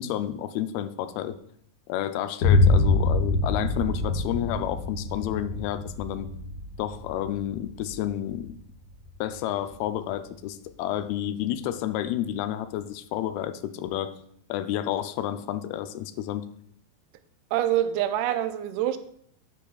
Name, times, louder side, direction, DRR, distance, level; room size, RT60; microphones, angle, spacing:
voice 1, 0.0-1.4 1.9-6.3 6.8-8.6 9.2-14.1 14.5-16.5, left 11 dB, 80° left, 11 dB, 2.4 m, -30 dB
Boom, 2.4-10.2, left 3 dB, 55° left, 1.0 m, -26 dB
voice 2, 17.5-19.0, right 12 dB, 85° right, 10 dB, 2.5 m, -25 dB
10.5 x 10.0 x 2.3 m, 0.68 s
omnidirectional pair, 4.6 m